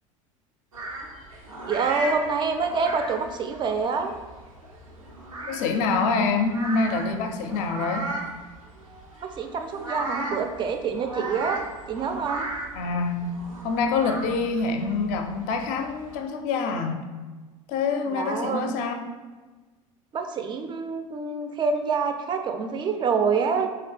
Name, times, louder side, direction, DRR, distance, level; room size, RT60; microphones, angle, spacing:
sound 1, 0.7-16.2, right 2 dB, 90° right, 0.5 m, -37 dB
voice 1, 1.7-4.1 9.2-11.6 11.9-12.5 18.1-18.7 20.1-23.7, right 5 dB, 30° right, 6 dB, 0.4 m, -26 dB
voice 2, 5.5-8.1 12.7-13.3 13.6-17.0 17.7-19.0, left 4 dB, 50° left, 5 dB, 0.5 m, -26 dB
2.8 x 2.7 x 3.3 m, 1.3 s
figure-of-eight pair, 75°, 17 cm